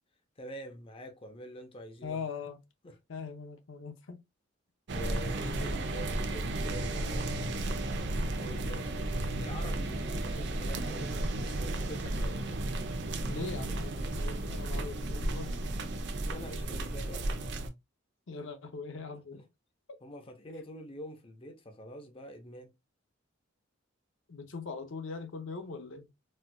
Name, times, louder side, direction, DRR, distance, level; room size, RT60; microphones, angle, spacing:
voice 1, 0.4-2.2 2.8-3.0 4.9-7.6 8.3-12.6 14.0-14.2 16.3-17.3 19.1-19.4 20.0-22.7, equal, 30° left, 0.6 m, -46 dB
voice 2, 2.0-2.6 3.1-4.2 13.3-15.5 18.3-19.4 24.3-26.1, left 4 dB, 70° left, 0.6 m, -41 dB
sound 1, 4.9-17.7, right 1 dB, 60° right, 0.6 m, -33 dB
4.3 x 2.4 x 2.2 m
head